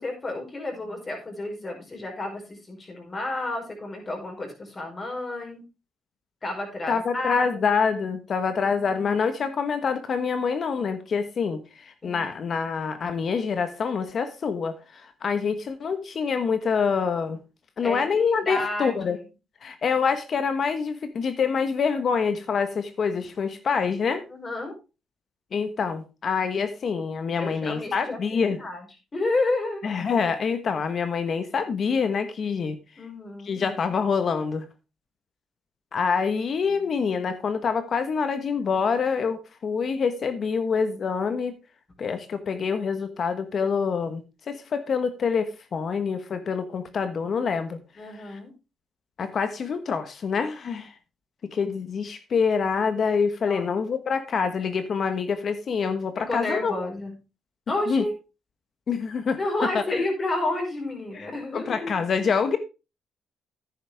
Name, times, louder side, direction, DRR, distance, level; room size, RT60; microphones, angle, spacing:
voice 1, 0.0-5.6 6.4-7.7 12.0-12.3 17.8-19.2 24.3-24.7 27.4-28.8 29.1-29.8 33.0-33.6 48.0-48.5 53.5-53.7 56.3-57.1 57.7-58.1 59.4-61.9, left 2 dB, 30° left, 2 dB, 4.9 m, -31 dB
voice 2, 6.9-17.4 17.8-19.2 19.6-24.2 25.5-28.6 29.8-32.8 33.4-34.7 35.9-41.5 42.0-47.8 48.2-48.4 49.2-50.9 51.5-56.7 57.9-58.0 58.9-59.7 61.5-62.6, left 5 dB, 50° left, 9 dB, 1.3 m, -26 dB
10.0 x 9.9 x 3.5 m, 0.29 s
cardioid pair, 90°, 0 cm